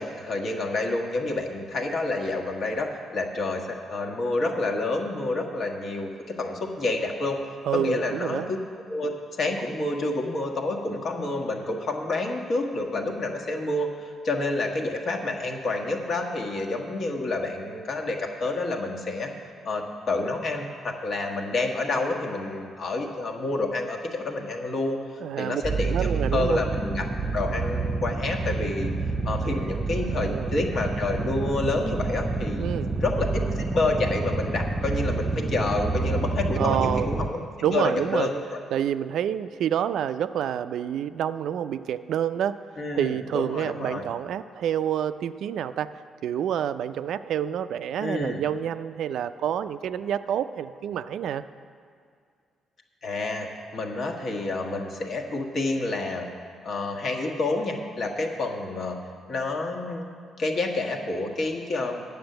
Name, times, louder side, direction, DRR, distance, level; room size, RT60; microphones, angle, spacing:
voice 1, 0.0-7.4 7.7-8.4 8.9-19.3 19.6-25.0 25.4-27.1 27.3-28.9 29.2-32.7 33.0-38.6 42.8-44.1 48.0-48.4 53.0-56.3 56.6-59.0 59.3-60.1 60.4-62.1, left 2 dB, 55° left, 1 dB, 1.4 m, -29 dB
voice 2, 7.6-8.5 25.2-25.6 25.9-26.6 30.0-30.5 32.6-32.9 36.6-37.1 37.6-38.3 38.7-42.6 42.9-45.9 46.2-51.4, right 9 dB, 75° right, 12 dB, 0.3 m, -28 dB
sound 1, 25.6-37.3, right 3 dB, 20° right, 0.6 m, -28 dB
9.6 x 7.0 x 7.8 m, 2.2 s
cardioid pair, 90°, 0 cm